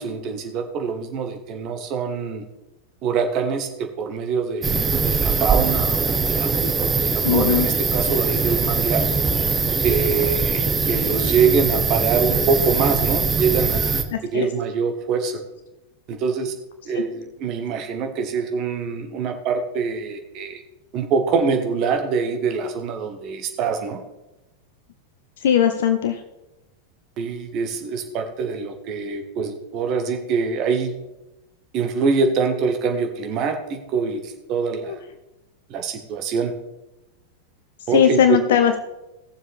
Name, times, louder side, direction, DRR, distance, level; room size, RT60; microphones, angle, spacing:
voice 1, 0.0-2.4 3.0-9.0 9.8-14.0 14.3-15.4 16.1-16.5 16.8-20.6 20.9-24.0 27.2-30.9 31.7-35.0 35.7-36.5 37.9-38.4, right 5 dB, 40° right, 5 dB, 1.5 m, -24 dB
sound 1, 4.6-14.0, right 4 dB, 15° right, 0.9 m, -22 dB
voice 2, 7.2-7.7 14.1-14.5 16.9-17.0 25.4-26.2 34.8-35.0 37.9-38.8, left 9 dB, 60° left, 7 dB, 0.7 m, -19 dB
17.5 x 7.2 x 3.5 m, 0.98 s
figure-of-eight pair, 90°, 0 cm